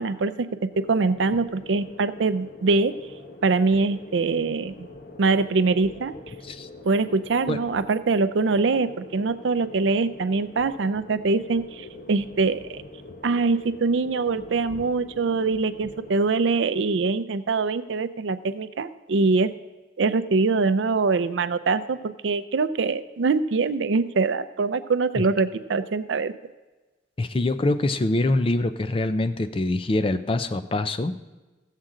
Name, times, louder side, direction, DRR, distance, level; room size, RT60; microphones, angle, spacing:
voice 1, 0.0-2.9 3.4-4.9 5.2-6.1 6.8-12.8 13.2-19.5 20.0-26.3, right 4 dB, 75° right, 12 dB, 0.5 m, -23 dB
sound 1, 0.7-16.3, left 2 dB, 50° left, 0.9 m, -44 dB
voice 2, 27.2-31.2, left 2 dB, 30° left, 11 dB, 0.4 m, -24 dB
15.5 x 7.4 x 3.8 m, 1.2 s
head